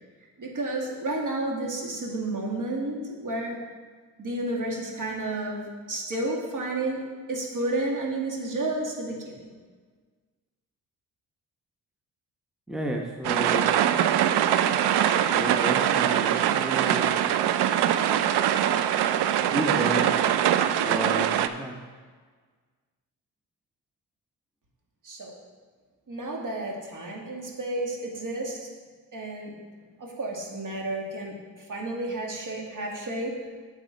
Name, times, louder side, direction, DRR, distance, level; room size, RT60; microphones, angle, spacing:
voice 1, 0.4-3.6 4.2-7.0 7.3-9.4 25.0-25.3 26.1-28.7 29.1-29.6 30.0-33.3, right 2 dB, 50° right, -1 dB, 2.2 m, -31 dB
voice 2, 12.7-13.7 15.2-17.1 19.4-20.0 20.6-21.7, right 1 dB, ahead, 1 dB, 0.9 m, -32 dB
sound 1, 13.2-21.5, right 10 dB, 75° right, 0.6 m, -23 dB
8.4 x 7.5 x 4.0 m, 1.5 s
cardioid pair, 70°, 40 cm